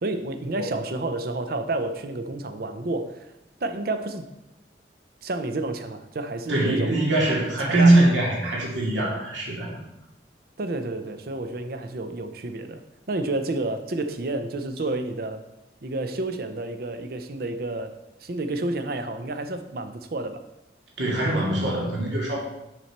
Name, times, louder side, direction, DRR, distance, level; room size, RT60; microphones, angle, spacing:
voice 1, 0.0-3.3 3.6-4.3 5.2-7.0 7.7-8.1 10.6-15.5 15.8-20.5, right 2 dB, 55° right, 9 dB, 0.6 m, -30 dB
voice 2, 6.5-9.7 21.0-22.4, right 1 dB, 85° right, -3 dB, 2.3 m, -22 dB
6.6 x 6.2 x 4.3 m, 0.93 s
head